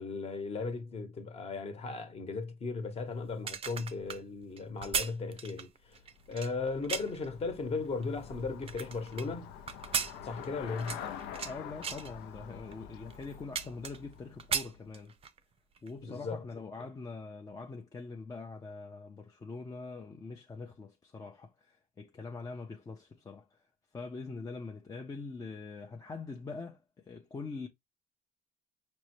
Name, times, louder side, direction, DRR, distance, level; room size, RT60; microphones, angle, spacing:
voice 1, 0.0-6.0 6.3-9.5 10.2-11.0 16.0-16.4 16.8-16.9, left 4 dB, 35° left, 1.0 m, -37 dB
sound 1, 3.3-7.3 7.8-9.3 9.7-11.5 11.8-12.1 12.7-12.8 13.1-14.1 14.4-15.4 15.8-15.9, right 6 dB, 35° right, 0.5 m, -36 dB
Traffic noise roadway noise / Bicycle, 5.9-15.0, left 8 dB, 85° left, 0.6 m, -47 dB
voice 2, 11.4-15.1 15.8-23.6 23.9-27.7, left 4 dB, 20° left, 0.5 m, -43 dB
5.2 x 2.1 x 3.0 m
cardioid pair, 110°, 17 cm